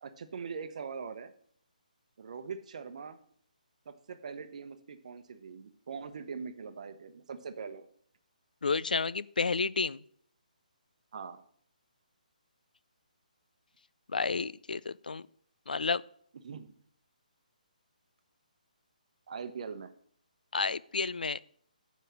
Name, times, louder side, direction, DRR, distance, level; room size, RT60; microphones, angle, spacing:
voice 1, 0.0-1.3 2.2-3.2 3.9-7.9 11.1-11.4 16.4-16.7 19.3-19.9, right 5 dB, 55° right, 10 dB, 0.9 m, -42 dB
voice 2, 8.6-10.0 14.1-15.2 15.7-16.0 20.5-21.4, left 4 dB, 80° left, 20 dB, 0.3 m, -31 dB
7.8 x 5.0 x 6.1 m, 0.62 s
figure-of-eight pair, 145°, 5 cm